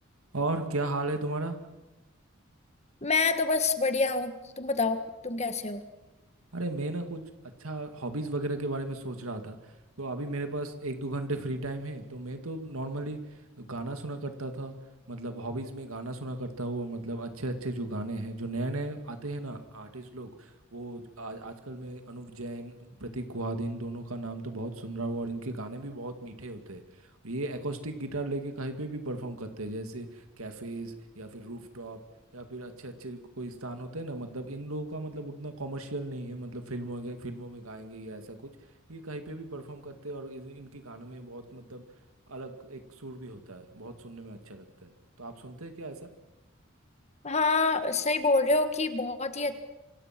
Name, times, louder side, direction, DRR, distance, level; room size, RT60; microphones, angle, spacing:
voice 1, 0.3-1.6 6.5-9.6 10.0-13.2 13.6-14.7 15.1-26.8 27.2-32.0 32.3-38.5 38.9-41.8 42.3-44.9 45.2-46.1, right 2 dB, 90° right, 7 dB, 2.3 m, -36 dB
voice 2, 3.0-5.8 47.2-49.6, left 3 dB, 30° left, 9 dB, 1.6 m, -27 dB
27.0 x 25.0 x 6.1 m, 1.1 s
head